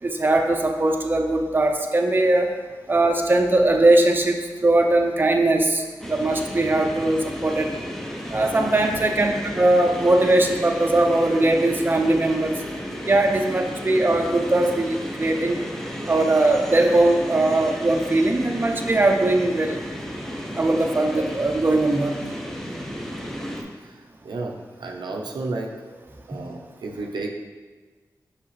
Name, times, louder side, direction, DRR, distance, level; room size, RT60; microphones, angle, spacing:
voice 1, 0.0-2.5 2.9-7.7 8.3-12.6 13.0-15.6 16.1-19.8 20.6-22.2 26.3-26.4, right 2 dB, 25° right, 3 dB, 0.6 m, -20 dB
sound 1, 6.0-23.6, equal, 5° left, 0.8 m, -33 dB
voice 2, 24.2-26.0 26.3-27.3, right 3 dB, 80° right, 1 dB, 0.6 m, -32 dB
5.7 x 5.6 x 3.2 m, 1.4 s
cardioid pair, 60°, 7 cm